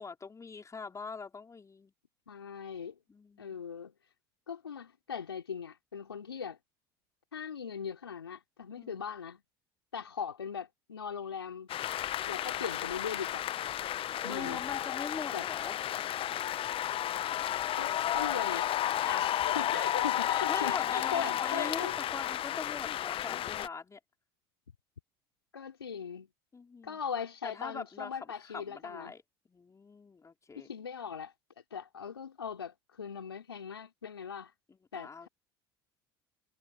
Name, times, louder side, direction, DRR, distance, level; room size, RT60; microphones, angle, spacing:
voice 1, 0.0-1.9 3.1-3.6 8.8-9.0 14.2-15.8 20.5-24.0 26.5-27.0 27.4-29.2 29.5-30.7 34.7-35.3, left 4 dB, 25° left, 5.0 m, -42 dB
voice 2, 2.3-3.0 3.4-3.9 4.5-6.6 7.3-9.4 9.9-11.7 12.3-13.5 14.2-14.6 15.3-15.4 17.8-18.7 19.0-21.9 25.5-26.3 26.8-29.1 30.6-31.3 31.7-34.5 34.9-35.3, left 7 dB, 90° left, 3.6 m, -39 dB
sound 1, 11.7-23.7, left 12 dB, 45° left, 1.0 m, -32 dB
hypercardioid pair, 65°, 13 cm